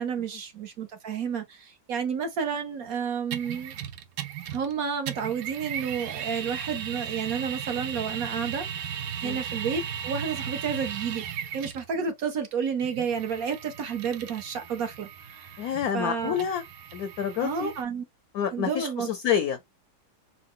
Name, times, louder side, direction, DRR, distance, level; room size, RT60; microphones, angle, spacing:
voice 1, 0.0-3.7 4.5-15.6 15.9-16.3 17.4-18.0 18.5-19.1, right 6 dB, 60° right, 1.1 m, -31 dB
sound 1, 3.3-4.7 5.1-11.9 12.8-17.8, right 8 dB, 75° right, 0.8 m, -36 dB
voice 2, 15.6-16.6 16.9-17.7 18.3-19.6, left 8 dB, 70° left, 0.9 m, -28 dB
4.8 x 2.1 x 3.6 m
omnidirectional pair, 2.1 m